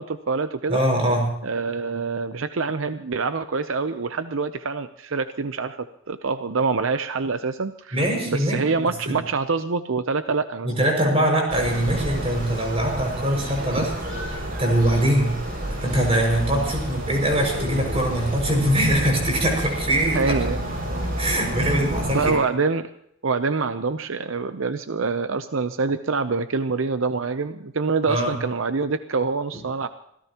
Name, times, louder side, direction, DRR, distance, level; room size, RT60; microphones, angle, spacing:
voice 1, 0.0-0.8 1.4-10.7 11.1-11.3 13.7-13.8 15.1-15.3 16.5-16.7 20.1-20.6 21.6-21.8 22.1-22.9 23.2-29.9, right 4 dB, 75° right, 10 dB, 0.7 m, -26 dB
voice 2, 0.7-1.3 7.9-8.7 9.1-9.2 10.6-13.9 14.3-15.4 15.8-20.4 21.2-22.4 28.1-28.3, right 1 dB, 30° right, 1 dB, 6.0 m, -22 dB
sound 1, 11.5-22.3, right 1 dB, 45° right, 6.0 m, -30 dB
26.0 x 17.0 x 3.0 m, 0.76 s
head